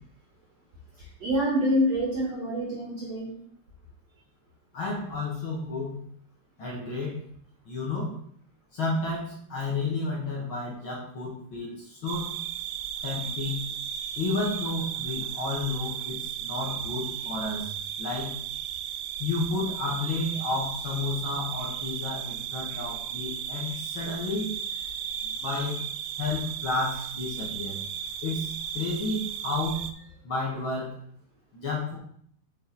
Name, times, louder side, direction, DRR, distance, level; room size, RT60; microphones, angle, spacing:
voice 1, 1.2-3.3, equal, 55° right, -5 dB, 2.1 m, -26 dB
voice 2, 4.7-6.0 6.6-7.1 7.6-8.1 8.7-12.3 13.0-13.6 14.1-17.7 18.0-18.3 19.2-24.5 25.2-25.8 26.2-27.8 28.2-29.8 30.2-30.9 31.5-31.9, left 3 dB, 60° left, -3 dB, 1.3 m, -31 dB
sound 1, 12.1-29.9, right 9 dB, 85° right, 2.2 m, -35 dB
7.2 x 5.3 x 4.0 m, 0.64 s
omnidirectional pair, 4.5 m